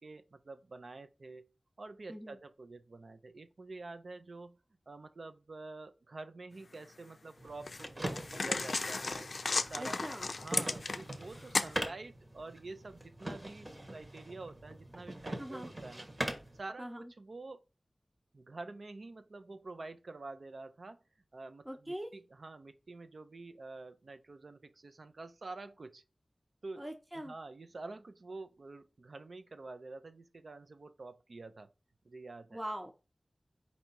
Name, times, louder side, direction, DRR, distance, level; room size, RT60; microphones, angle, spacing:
voice 1, 0.0-1.5 1.8-4.6 4.9-9.3 9.7-10.0 10.4-16.1 16.5-17.6 18.3-21.0 21.3-26.0 26.6-26.8 27.1-31.7 32.0-32.6, right 3 dB, 75° right, 0.6 m, -48 dB
sound 1, 6.7-6.8 7.7-11.2 11.5-11.8, left 3 dB, 75° left, 0.4 m, -34 dB
sound 2, 7.4-16.6, right 1 dB, 35° right, 1.2 m, -43 dB
voice 2, 9.8-10.3 15.4-15.7 16.8-17.1 21.6-22.1 26.8-27.3 32.5-32.9, equal, 15° right, 0.8 m, -42 dB
4.6 x 2.8 x 4.1 m
wide cardioid pair, 70°, 0 cm